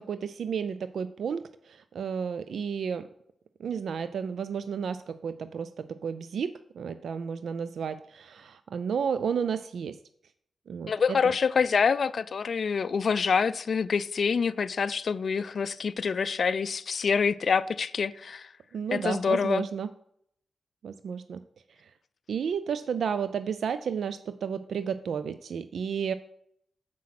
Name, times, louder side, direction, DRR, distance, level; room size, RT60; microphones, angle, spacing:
voice 1, 0.0-3.1 3.6-10.0 10.7-11.3 18.7-19.9 20.8-21.4 21.8-21.9 22.3-26.1, right 7 dB, 80° right, 0.3 m, -32 dB
voice 2, 10.9-18.5 18.9-19.6, left 5 dB, 65° left, 0.4 m, -26 dB
7.4 x 5.7 x 5.8 m
cardioid pair, 60°, 0 cm